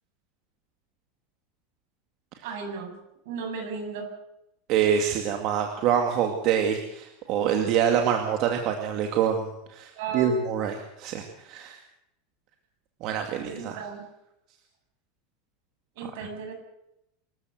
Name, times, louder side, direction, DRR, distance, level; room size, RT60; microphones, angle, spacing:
voice 1, 2.4-2.9 3.2-4.1 10.0-10.4 13.5-14.1 16.0-16.5, right 5 dB, 65° right, 4 dB, 8.0 m, -35 dB
voice 2, 4.7-11.8 13.0-13.9 16.0-16.3, right 8 dB, 45° right, 4 dB, 2.3 m, -26 dB
26.0 x 14.0 x 8.1 m, 0.84 s
supercardioid pair, 165°, 0 cm